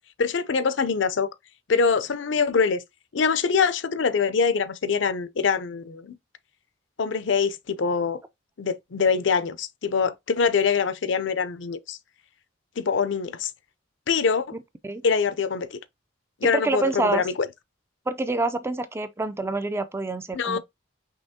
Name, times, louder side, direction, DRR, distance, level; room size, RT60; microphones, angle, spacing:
voice 1, 0.2-1.3 1.7-2.8 3.1-6.1 7.0-8.2 8.6-12.0 12.8-13.5 14.1-14.5 15.0-15.8 16.4-17.5 20.3-20.6, left 5 dB, 65° left, 0.5 m, -24 dB
voice 2, 16.4-17.2 18.1-20.6, right 3 dB, 15° right, 0.3 m, -27 dB
5.5 x 3.1 x 2.7 m
head